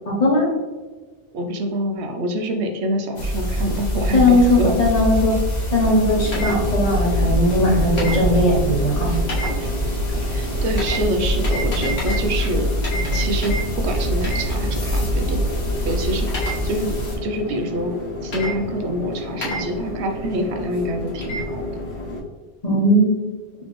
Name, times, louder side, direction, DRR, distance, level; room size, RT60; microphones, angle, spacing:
voice 1, 0.1-0.5 4.1-5.3 5.7-9.2 22.6-23.2, left 1 dB, 35° left, -3 dB, 0.9 m, -18 dB
voice 2, 1.3-4.8 9.6-9.7 10.2-12.7 13.1-15.4 15.9-17.0 17.2-17.9 18.2-21.8, equal, 70° right, 4 dB, 0.8 m, -26 dB
sound 1, 3.2-17.2, equal, 65° left, 1.4 m, -24 dB
sound 2, 5.7-22.2, left 1 dB, 90° left, 1.5 m, -30 dB
4.2 x 3.1 x 3.0 m, 1.3 s
omnidirectional pair, 1.2 m